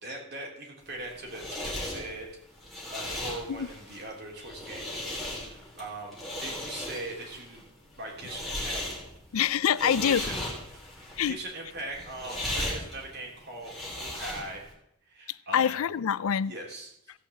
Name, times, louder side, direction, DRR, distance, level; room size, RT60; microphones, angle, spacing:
voice 1, 0.0-2.3 2.9-4.9 5.5-7.6 8.0-8.8 9.8-10.4 11.2-14.6 15.1-15.8 16.4-17.1, right 2 dB, 50° right, 3.4 m, -40 dB
sound 1, 0.9-14.7, left 1 dB, ahead, 3.0 m, -37 dB
voice 2, 9.3-10.3 11.2-11.4 15.5-16.5, left 8 dB, 85° left, 0.4 m, -25 dB
16.5 x 5.8 x 7.3 m
head